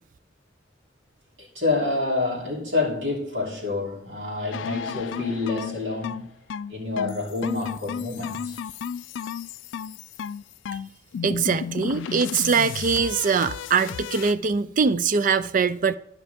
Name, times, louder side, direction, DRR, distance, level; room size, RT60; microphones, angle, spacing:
voice 1, 1.4-6.3 6.7-8.6, left 3 dB, 70° right, 3.1 m, -28 dB
sound 1, 4.5-14.3, left 7 dB, 75° left, 0.3 m, -33 dB
voice 2, 11.2-16.0, right 5 dB, 45° right, 0.4 m, -22 dB
12.0 x 5.9 x 3.5 m
head